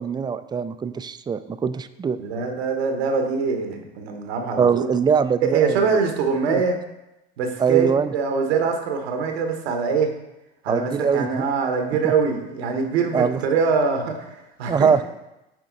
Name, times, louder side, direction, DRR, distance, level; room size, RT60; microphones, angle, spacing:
voice 1, 0.0-2.2 4.6-6.0 6.5-6.6 7.6-8.1 10.7-11.5 12.0-12.1 13.1-13.4 14.7-15.0, right 6 dB, 15° right, 12 dB, 0.3 m, -22 dB
voice 2, 2.2-4.9 5.4-6.8 7.4-10.1 10.6-15.0, right 5 dB, 80° right, 4 dB, 1.2 m, -23 dB
7.8 x 4.8 x 3.9 m, 0.94 s
hypercardioid pair, 80°, 31 cm